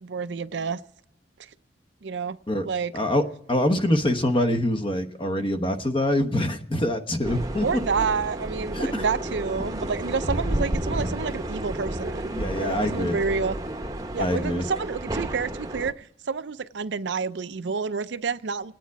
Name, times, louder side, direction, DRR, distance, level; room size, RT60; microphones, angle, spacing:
voice 1, 0.0-0.8 2.0-2.4 2.6-2.9 7.6-13.6 14.1-18.7, right 5 dB, 70° right, 13 dB, 0.5 m, -29 dB
voice 2, 2.9-7.7 8.7-9.0 12.2-13.2 14.2-14.7, left 1 dB, 30° left, 8 dB, 1.0 m, -25 dB
sound 1, 7.2-15.9, right 1 dB, 20° right, 0.9 m, -31 dB
27.0 x 9.3 x 4.7 m, 0.79 s
head